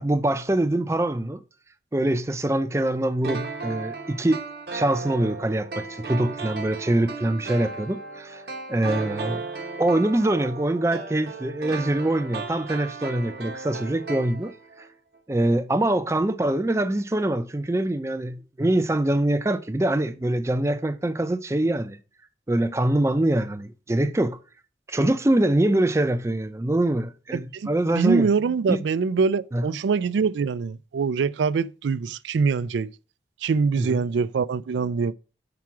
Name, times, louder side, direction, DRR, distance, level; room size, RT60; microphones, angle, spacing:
voice 1, 0.0-1.4 1.9-4.4 4.7-8.4 8.7-9.4 9.8-14.5 14.8-14.9 15.3-22.0 22.5-24.4 24.9-28.3 28.7-28.8 29.5-29.7 33.8-34.0, right 1 dB, 15° right, 0.4 m, -24 dB
sound 1, 3.2-14.9 15.1-15.2, right 4 dB, 60° right, 1.1 m, -35 dB
voice 2, 27.3-27.7 28.0-32.9 33.4-35.1, right 5 dB, 85° right, 0.4 m, -24 dB
5.9 x 4.7 x 6.0 m
head